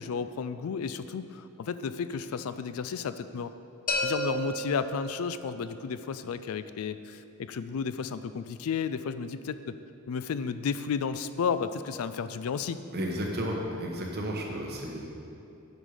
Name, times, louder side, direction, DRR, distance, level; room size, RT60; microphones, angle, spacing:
voice 1, 0.0-3.5 4.0-9.8 10.1-12.8, left 6 dB, 85° left, 12 dB, 0.4 m, -33 dB
sound 1, 3.9-5.7, equal, 40° left, 1.0 m, -32 dB
voice 2, 12.9-15.1, equal, 50° right, 0 dB, 1.3 m, -33 dB
9.1 x 6.4 x 5.0 m, 2.8 s
head